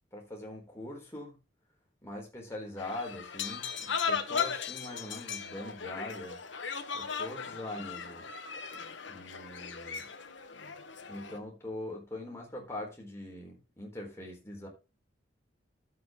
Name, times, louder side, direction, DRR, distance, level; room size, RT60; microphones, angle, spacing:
voice 1, 0.1-1.4 2.0-6.4 6.9-8.3 9.0-10.1 11.1-14.7, left 1 dB, 15° left, 4.1 m, -42 dB
sound 1, 2.8-11.4, left 6 dB, 90° left, 1.2 m, -37 dB
11.0 x 8.2 x 3.7 m
head